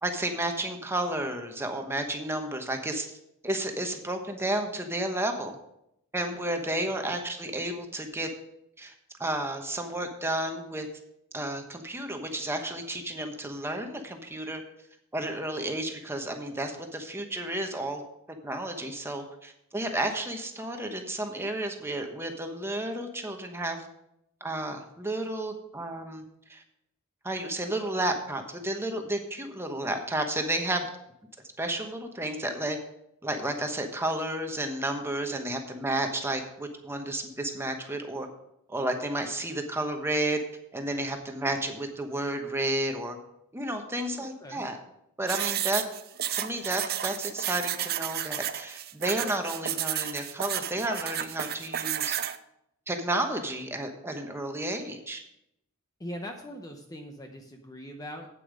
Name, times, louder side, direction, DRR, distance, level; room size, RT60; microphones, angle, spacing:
voice 1, 0.0-3.2 3.4-5.6 6.1-8.3 8.8-8.9 9.2-10.9 11.3-14.6 15.1-18.0 18.4-23.9 24.4-26.6 27.2-30.9 31.6-32.8 33.2-38.3 38.7-40.4 40.7-43.2 43.5-44.8 45.2-45.8 46.3-52.2 52.9-55.2, right 1 dB, 10° right, 4 dB, 1.1 m, -32 dB
voice 2, 44.2-44.6 56.0-58.3, equal, 15° left, 4 dB, 0.8 m, -41 dB
sound 1, 45.3-52.4, right 11 dB, 45° right, 0.6 m, -32 dB
8.6 x 8.4 x 5.1 m, 0.79 s
head